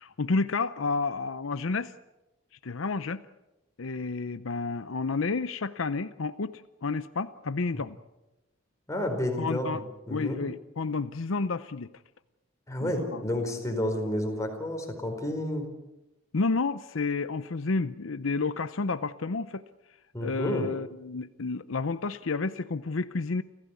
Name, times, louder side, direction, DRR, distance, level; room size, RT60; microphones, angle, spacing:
voice 1, 0.0-1.9 2.6-3.2 3.8-8.0 9.4-9.8 10.1-11.9 12.8-13.2 16.3-19.6 20.2-23.4, left 3 dB, 75° left, 13 dB, 0.7 m, -30 dB
voice 2, 8.9-9.8 10.1-10.4 12.7-15.7 20.1-20.7, left 1 dB, 15° left, 3 dB, 4.7 m, -30 dB
29.5 x 15.5 x 8.4 m, 0.99 s
head